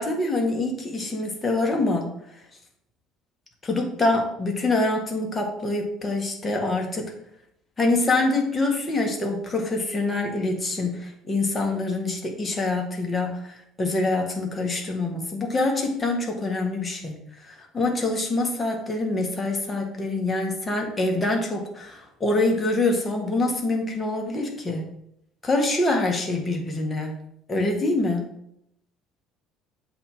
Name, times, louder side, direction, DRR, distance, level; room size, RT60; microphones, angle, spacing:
voice 1, 0.0-2.1 3.6-7.1 7.8-24.9 25.4-27.2 27.5-28.3, left 2 dB, 25° left, 2 dB, 1.6 m, -25 dB
7.7 x 2.9 x 4.9 m, 0.75 s
figure-of-eight pair, 55°, 0 cm